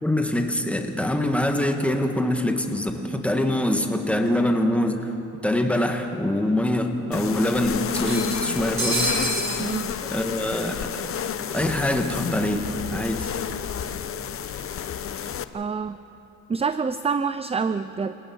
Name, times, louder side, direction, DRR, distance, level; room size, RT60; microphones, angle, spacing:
voice 1, 0.0-5.1 5.4-9.4 10.0-10.9 11.5-13.3, left 1 dB, 5° left, 4 dB, 2.1 m, -24 dB
sound 1, 4.5-4.6 4.9-5.0 6.1-6.2 6.5-6.6 7.9-9.6, right 2 dB, 40° right, 5.5 m, -28 dB
sound 2, 7.1-15.4, left 8 dB, 45° left, 0.9 m, -30 dB
voice 2, 9.6-9.9 15.5-16.0 16.5-18.1, right 5 dB, 20° right, 12 dB, 0.6 m, -26 dB
28.5 x 18.0 x 6.3 m, 2.9 s
cardioid pair, 90°, 30 cm